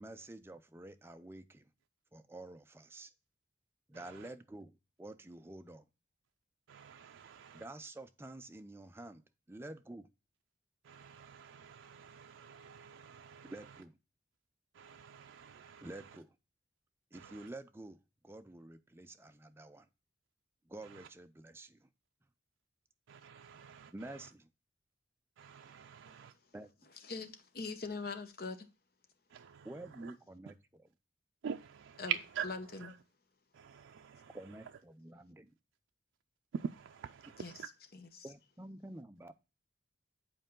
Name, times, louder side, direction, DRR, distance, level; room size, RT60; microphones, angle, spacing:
voice 1, 0.0-1.7 2.1-3.1 3.9-5.9 7.5-9.2 9.5-10.1 13.4-14.0 15.8-16.3 17.1-18.0 18.2-19.9 20.7-21.9 23.9-24.5 26.5-26.7 29.6-30.5 34.3-35.5 38.2-39.3, right 2 dB, 15° right, 0.4 m, -49 dB
voice 2, 3.9-4.3 6.7-7.7 10.8-13.8 14.7-16.2 17.1-17.5 20.8-21.1 23.1-24.3 25.4-26.3 29.3-30.1 31.4-33.0 33.5-34.8 36.5-37.7, right 8 dB, 90° right, 0.4 m, -45 dB
voice 3, 27.1-28.7 32.0-32.1 37.4-37.5 38.2-38.3, left 4 dB, 55° left, 0.9 m, -42 dB
7.9 x 4.5 x 3.6 m
head